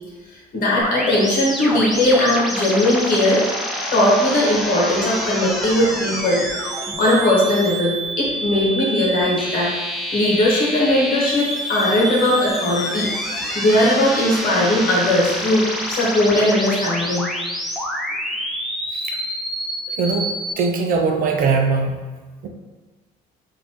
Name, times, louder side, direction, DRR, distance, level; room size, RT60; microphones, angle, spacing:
voice 1, 0.5-3.4 3.9-9.7 10.1-17.3, left 1 dB, 55° left, -4 dB, 1.3 m, -19 dB
sound 1, 0.8-20.5, equal, ahead, 0.5 m, -27 dB
voice 2, 20.0-20.3 20.6-22.0 22.4-22.5, right 4 dB, 55° right, 4 dB, 0.5 m, -20 dB
4.0 x 2.7 x 2.9 m, 1.2 s
cardioid pair, 110°, 17 cm